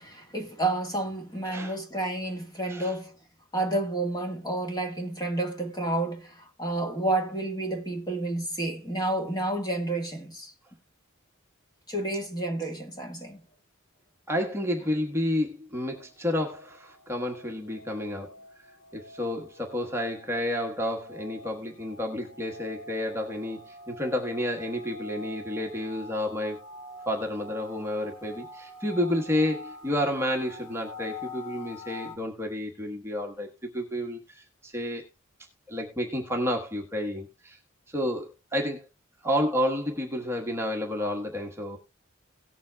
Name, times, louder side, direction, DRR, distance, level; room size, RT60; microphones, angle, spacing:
voice 1, 0.0-3.2 3.5-10.5 11.9-13.4, right 2 dB, 20° left, 1.6 m, -30 dB
voice 2, 1.4-1.8 2.7-3.0 14.3-18.3 18.9-26.6 27.1-33.5 33.7-35.0 35.7-37.6 37.9-38.8 39.2-41.8, left 1 dB, 10° right, 1.2 m, -30 dB
sound 1, 15.9-32.2, left 2 dB, 90° left, 4.2 m, -46 dB
18.0 x 7.3 x 2.3 m
head